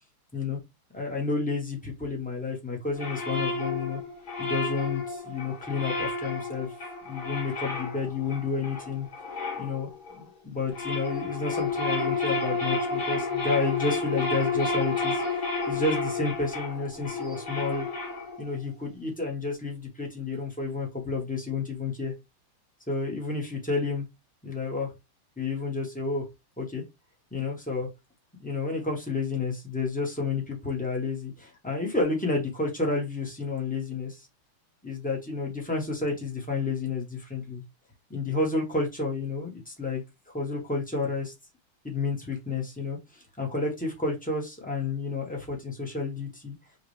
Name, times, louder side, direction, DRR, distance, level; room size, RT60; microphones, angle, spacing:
voice 1, 0.9-4.0 4.4-6.7 7.0-9.1 9.6-9.9 10.2-15.2 15.7-17.9 18.4-22.1 22.9-24.0 24.4-24.9 25.4-26.2 26.6-26.8 27.3-27.9 28.4-34.3 34.8-37.6 38.1-40.0 40.3-41.3 41.8-46.5, left 3 dB, 10° left, -1 dB, 0.4 m, -30 dB
sound 1, 3.0-10.2 10.6-18.5, left 3 dB, 35° left, 0.8 m, -31 dB
5.7 x 2.2 x 3.2 m, 0.22 s
omnidirectional pair, 2.3 m